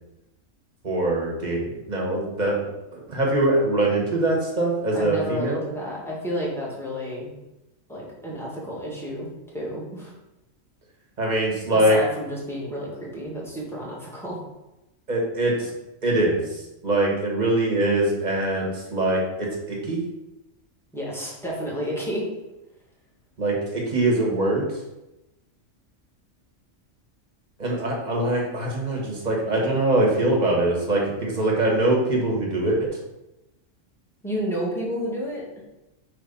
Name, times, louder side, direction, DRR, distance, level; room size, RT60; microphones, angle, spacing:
voice 1, 0.8-1.6 1.9-2.7 3.1-5.6 11.2-12.0 15.1-15.7 16.0-16.4 16.8-20.0 23.4-24.7 27.6-32.9, right 1 dB, 35° right, -2 dB, 1.5 m, -23 dB
voice 2, 4.9-7.3 7.9-10.1 11.7-14.4 20.9-22.2 34.2-35.6, equal, ahead, -5 dB, 1.7 m, -31 dB
4.3 x 4.2 x 5.4 m, 0.96 s
omnidirectional pair, 1.3 m